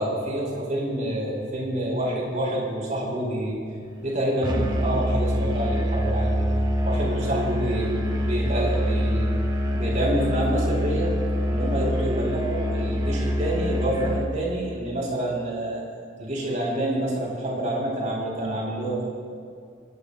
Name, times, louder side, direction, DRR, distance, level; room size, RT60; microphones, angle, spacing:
voice 1, 0.0-3.6 4.0-6.5 6.8-7.9 8.2-9.3 9.7-11.1 11.5-15.8 16.2-19.1, right 1 dB, 40° right, -2 dB, 5.1 m, -27 dB
Musical instrument, 4.4-14.4, equal, 25° right, 1.2 m, -25 dB
27.0 x 19.5 x 2.5 m, 2.2 s
head